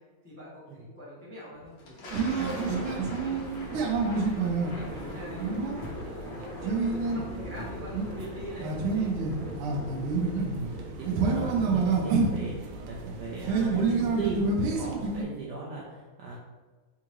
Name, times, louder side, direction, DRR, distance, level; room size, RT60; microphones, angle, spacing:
voice 1, 0.2-4.0 4.3-9.1, left 1 dB, 10° left, -8 dB, 0.7 m, -45 dB
Thunder, 1.6-12.4, left 1 dB, 70° left, 0.6 m, -41 dB
sound 1, 2.1-15.2, right 4 dB, 90° right, 1.5 m, -29 dB
voice 2, 11.0-16.4, right 3 dB, 70° right, -4 dB, 1.0 m, -37 dB
3.6 x 3.6 x 3.0 m, 1.3 s
omnidirectional pair, 2.3 m